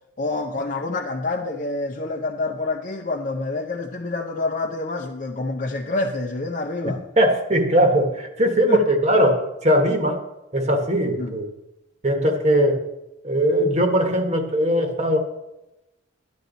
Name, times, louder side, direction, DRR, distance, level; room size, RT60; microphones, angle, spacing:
voice 1, 0.2-7.0 8.7-8.9 11.2-11.4, left 2 dB, 40° left, 0.7 m, -27 dB
voice 2, 6.8-10.2 10.5-11.5 12.0-12.9 13.2-15.2, equal, 35° right, 1.3 m, -20 dB
12.5 x 10.5 x 4.0 m
head